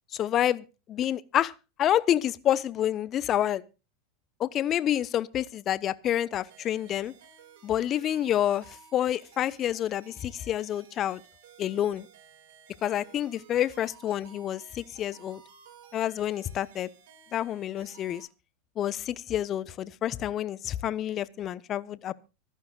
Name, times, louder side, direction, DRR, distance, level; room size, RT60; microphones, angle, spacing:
voice 1, 0.1-1.5 1.8-3.6 4.4-7.1 7.6-11.2 11.6-12.1 12.8-15.4 15.9-16.9 17.3-18.3 18.8-22.1, left 11 dB, 35° left, 0.9 m, -28 dB
sound 1, 6.4-18.2, right 7 dB, 60° right, 6.9 m, -55 dB
25.0 x 11.5 x 2.4 m
figure-of-eight pair, 90°, 0 cm